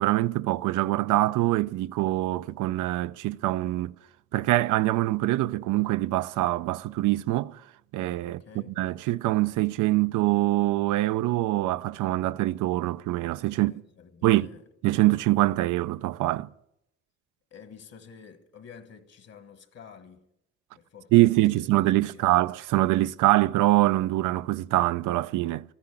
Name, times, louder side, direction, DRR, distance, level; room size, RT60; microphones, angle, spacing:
voice 1, 0.0-3.9 4.3-7.6 7.9-13.8 14.2-14.5 14.8-16.5 21.1-25.6, right 17 dB, 85° right, 0.5 m, -24 dB
voice 2, 8.2-8.8 13.5-14.6 17.5-20.3 20.7-21.1 21.4-21.6 22.0-22.3, left 6 dB, 55° left, 1.5 m, -49 dB
13.5 x 9.8 x 7.2 m
cardioid pair, 90°, 30 cm